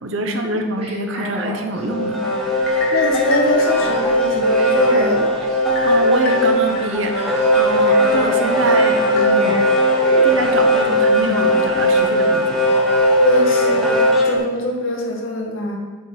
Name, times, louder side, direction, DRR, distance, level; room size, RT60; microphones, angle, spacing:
voice 1, 0.0-2.2 5.8-9.6 10.2-12.6, right 2 dB, 65° right, 5 dB, 0.8 m, -24 dB
sound 1, 0.7-1.8 3.7-5.6 6.8-6.9 7.2-7.6 7.9-8.9 9.2-10.4 12.7-13.0, equal, 30° right, 1.5 m, -30 dB
sound 2, 1.8-14.4, equal, ahead, 1.1 m, -17 dB
sound 3, 2.6-4.3 4.8-4.9 5.8-6.8 7.3-7.4 8.7-9.7 10.2-10.3 11.1-11.3, left 3 dB, 50° left, 1.4 m, -30 dB
voice 2, 2.9-5.2 13.2-15.8, left 1 dB, 70° left, 0 dB, 1.4 m, -23 dB
8.0 x 4.5 x 4.9 m, 1.5 s
head